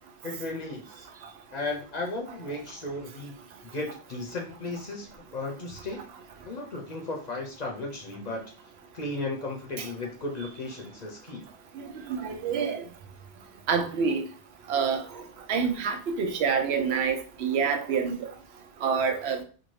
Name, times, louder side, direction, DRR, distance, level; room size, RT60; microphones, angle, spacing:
voice 1, 0.2-1.1 1.5-3.4 3.6-6.0 6.4-8.4 8.9-11.4, left 2 dB, 50° left, 0 dB, 0.6 m, -35 dB
voice 2, 12.1-12.8 13.7-14.2 14.7-15.0 15.5-18.1 18.8-19.4, right 6 dB, 75° right, 5 dB, 0.8 m, -27 dB
2.6 x 2.5 x 3.1 m, 0.40 s
omnidirectional pair, 1.1 m